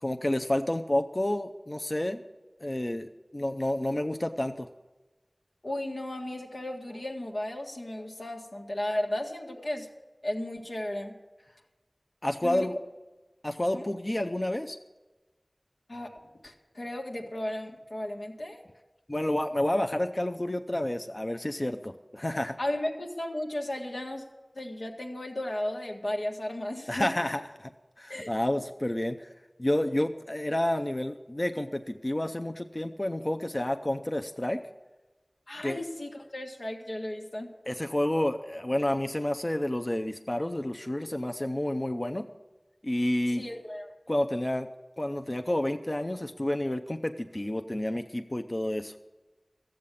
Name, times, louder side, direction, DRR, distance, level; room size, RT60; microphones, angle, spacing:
voice 1, 0.0-2.2 2.6-4.7 12.2-12.7 13.4-14.8 19.1-22.6 26.9-27.7 28.0-29.3 29.6-34.6 35.6-35.8 37.7-42.3 42.8-43.4 44.1-44.7 45.0-49.0, left 1 dB, 40° left, 6 dB, 0.6 m, -30 dB
voice 2, 5.6-9.9 10.2-11.1 12.4-12.7 13.7-13.9 15.9-16.2 16.4-18.6 22.6-24.2 24.5-27.1 28.1-28.3 35.5-37.6 43.3-43.9, left 1 dB, 85° left, 1 dB, 1.7 m, -34 dB
14.0 x 7.6 x 8.5 m, 1.2 s
wide cardioid pair, 45°, 0 cm